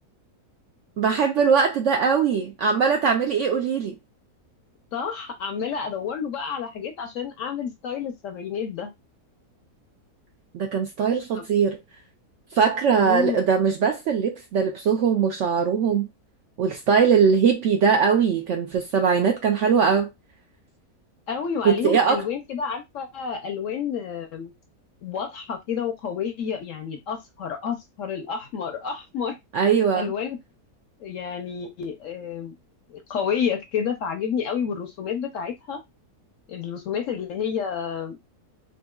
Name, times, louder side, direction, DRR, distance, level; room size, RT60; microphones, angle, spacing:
voice 1, 1.0-4.0 10.5-11.8 12.5-16.1 16.6-20.1 21.6-22.3 29.5-30.1, right 6 dB, 70° right, 0.7 m, -21 dB
voice 2, 4.9-8.9 11.3-11.4 13.0-13.5 21.3-24.5 25.0-29.4 29.9-30.4 31.0-32.5 32.9-35.8 36.5-38.2, left 7 dB, 65° left, 0.8 m, -30 dB
3.7 x 2.6 x 2.3 m
omnidirectional pair, 1.7 m